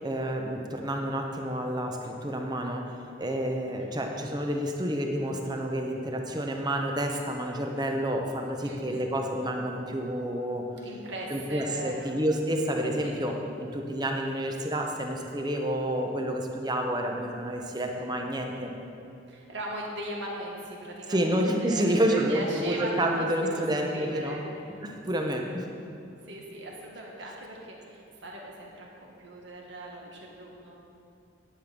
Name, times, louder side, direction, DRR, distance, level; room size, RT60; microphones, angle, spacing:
voice 1, 0.0-10.7 11.3-18.7 21.1-24.4 24.8-25.7, right 1 dB, 20° right, 2 dB, 0.9 m, -29 dB
voice 2, 8.6-9.1 10.8-12.1 13.0-13.2 17.9-18.1 19.3-24.8 25.2-25.4 26.3-30.7, right 1 dB, 65° right, -2 dB, 1.9 m, -39 dB
10.0 x 8.7 x 5.3 m, 2.8 s
head